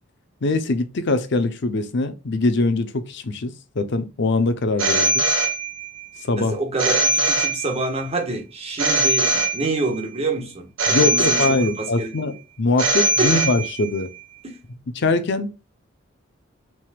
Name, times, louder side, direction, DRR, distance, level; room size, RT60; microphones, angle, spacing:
voice 1, 0.4-5.3 6.2-6.6 10.9-14.1 14.9-15.5, left 3 dB, 60° left, 0.6 m, -22 dB
Telephone, 4.8-6.0 6.8-8.0 8.8-10.0 10.8-12.0 12.8-14.0, right 2 dB, 65° right, 1.1 m, -21 dB
voice 2, 6.4-12.1 13.2-13.4 14.4-14.6, right 2 dB, 30° right, 1.3 m, -27 dB
6.1 x 3.4 x 2.3 m
head